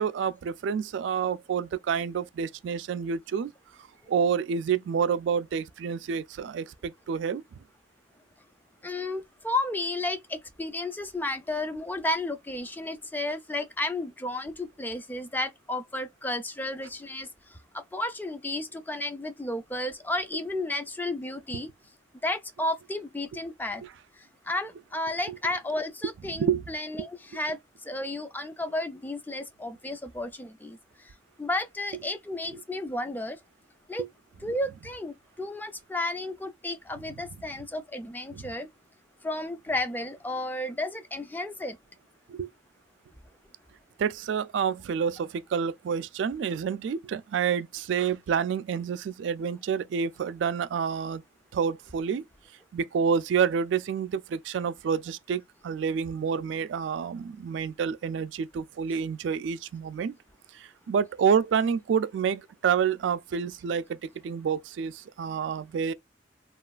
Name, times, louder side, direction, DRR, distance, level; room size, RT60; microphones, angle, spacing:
voice 1, 0.0-3.5 4.1-7.4 26.3-26.6 27.0-27.1 32.5-32.6 34.0-34.1 38.3-38.4 42.3-42.5 44.0-51.2 51.5-52.2 52.7-60.2 60.5-64.0 64.2-65.9, right 7 dB, 70° right, 0.3 m, -28 dB
voice 2, 8.8-17.3 17.7-21.7 22.2-23.8 24.5-27.6 27.9-30.8 31.4-33.4 33.9-34.0 34.4-38.7 39.2-41.8, left 1 dB, 10° left, 0.4 m, -32 dB
3.0 x 2.3 x 2.3 m
head